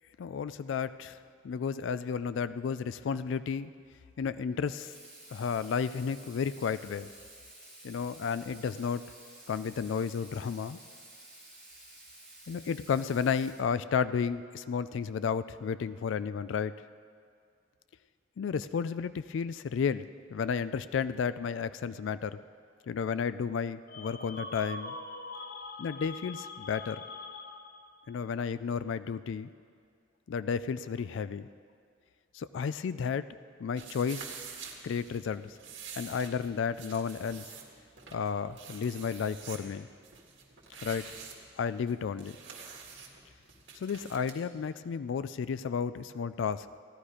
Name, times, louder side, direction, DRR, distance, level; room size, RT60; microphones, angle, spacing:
voice 1, 0.2-1.2 1.4-3.7 4.2-4.9 5.3-7.1 7.8-9.0 9.5-10.8 12.5-16.8 18.4-22.4 22.9-25.0 25.8-27.0 28.1-29.5 30.3-31.5 32.3-33.3 33.6-34.3 34.8-35.6 35.9-37.5 38.1-39.9 40.8-41.0 41.6-42.4 43.7-46.7, left 6 dB, 90° left, 14 dB, 0.4 m, -32 dB
Water tap faucet / Sink (filling or washing), 4.7-13.5, right 1 dB, 5° left, 3.7 m, -52 dB
sound 1, 23.9-28.0, left 2 dB, 55° left, 0.7 m, -43 dB
sound 2, 33.7-44.4, right 6 dB, 85° right, 1.9 m, -47 dB
16.0 x 11.5 x 5.0 m, 2.2 s
head